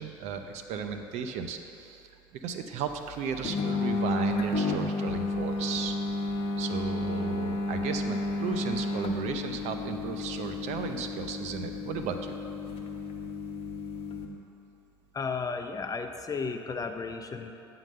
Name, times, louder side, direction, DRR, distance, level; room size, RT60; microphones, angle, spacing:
voice 1, 0.0-2.1 2.4-6.0 6.6-12.4, right 6 dB, 60° right, 6 dB, 0.6 m, -35 dB
sound 1, 3.4-14.3, left 2 dB, 50° left, 0.9 m, -32 dB
voice 2, 15.1-17.5, left 4 dB, 30° left, 6 dB, 0.6 m, -34 dB
9.0 x 3.9 x 6.6 m, 2.8 s
hypercardioid pair, 65°, 13 cm